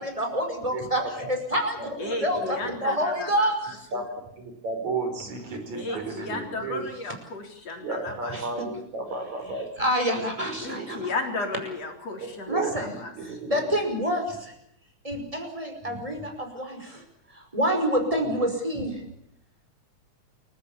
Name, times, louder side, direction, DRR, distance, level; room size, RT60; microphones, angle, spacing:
voice 1, 0.0-1.0 1.3-3.6 5.9-6.0 8.3-8.7 9.8-11.1 12.5-12.9 13.2-14.5 15.0-19.0, equal, 10° right, 5 dB, 5.3 m, -28 dB
voice 2, 0.7-1.3 1.8-2.5 3.9-4.1 4.4-6.9 7.8-9.7 10.4-11.1 12.5-13.6 15.8-16.0 18.2-18.5, right 3 dB, 70° right, 6 dB, 5.9 m, -34 dB
voice 3, 2.0-4.0 5.7-8.7 10.6-13.1, left 3 dB, 55° left, 3 dB, 5.0 m, -34 dB
29.0 x 15.5 x 8.5 m, 0.72 s
omnidirectional pair, 3.4 m